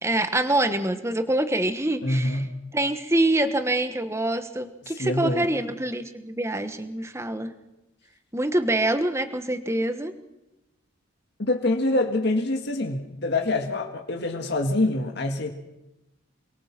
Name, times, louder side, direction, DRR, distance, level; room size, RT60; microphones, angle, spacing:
voice 1, 0.0-2.4 2.7-7.5 8.3-10.1, right 1 dB, 15° right, 10 dB, 1.3 m, -25 dB
voice 2, 2.0-2.5 4.9-5.5 11.4-15.5, left 2 dB, 55° left, 3 dB, 1.9 m, -25 dB
29.0 x 22.5 x 6.0 m, 0.94 s
head